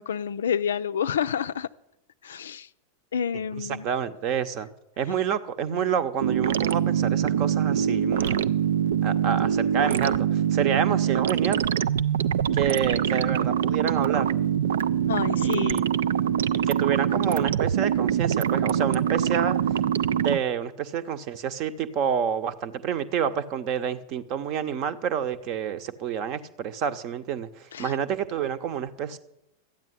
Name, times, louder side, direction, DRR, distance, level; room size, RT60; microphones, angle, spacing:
voice 1, 0.0-1.7 2.2-2.7 3.1-3.9 15.1-15.9 27.7-27.9, left 8 dB, 65° left, 13 dB, 0.4 m, -28 dB
voice 2, 3.6-4.7 5.0-8.5 9.0-11.6 12.5-14.3 15.4-15.9 16.7-19.6 20.2-29.2, right 8 dB, 40° right, 12 dB, 0.9 m, -28 dB
sound 1, 6.2-20.4, right 9 dB, 60° right, 0.4 m, -24 dB
13.0 x 9.1 x 8.1 m, 0.86 s
figure-of-eight pair, 90°, 0 cm